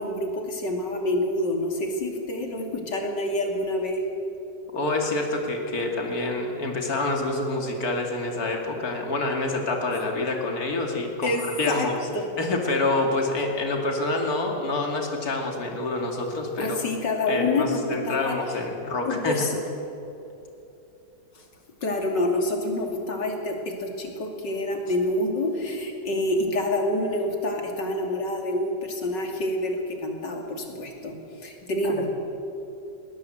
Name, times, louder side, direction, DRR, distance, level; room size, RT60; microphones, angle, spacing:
voice 1, 0.0-4.0 11.2-11.9 12.1-12.2 16.6-18.4 19.0-19.6 21.3-21.4 21.8-32.1, left 1 dB, 75° left, 2 dB, 3.4 m, -27 dB
voice 2, 4.7-12.0 12.4-16.8 17.3-19.5 31.8-32.0, left 2 dB, 55° left, 2 dB, 3.1 m, -27 dB
20.5 x 20.0 x 8.0 m, 2.9 s
omnidirectional pair, 1.9 m